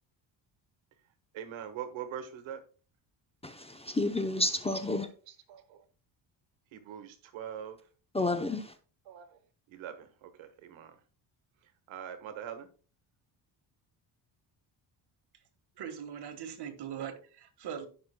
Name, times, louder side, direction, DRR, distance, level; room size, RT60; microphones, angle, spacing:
voice 1, 1.3-2.6 5.3-5.8 6.7-7.8 9.1-9.3 9.7-10.9 11.9-12.7, right 9 dB, 75° right, 1.4 m, -42 dB
voice 2, 3.4-5.1 8.1-8.7, left 2 dB, 15° left, 0.6 m, -30 dB
voice 3, 15.8-17.9, right 8 dB, 55° right, 1.7 m, -40 dB
15.0 x 5.7 x 2.2 m
cardioid pair, 110°, 47 cm